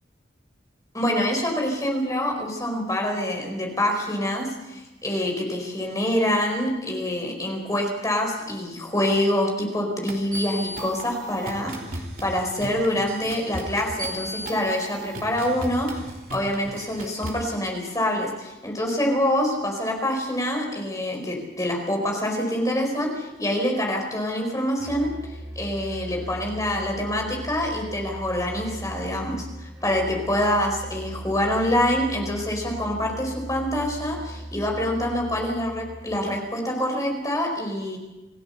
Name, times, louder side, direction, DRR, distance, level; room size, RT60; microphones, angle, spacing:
voice 1, 0.9-25.1 25.5-38.0, left 1 dB, 15° left, 1 dB, 4.5 m, -26 dB
sound 1, 10.1-17.5, right 1 dB, 45° right, 3.2 m, -36 dB
Musical instrument, 24.8-36.5, equal, 15° right, 3.1 m, -38 dB
27.0 x 16.0 x 6.9 m, 1.1 s
head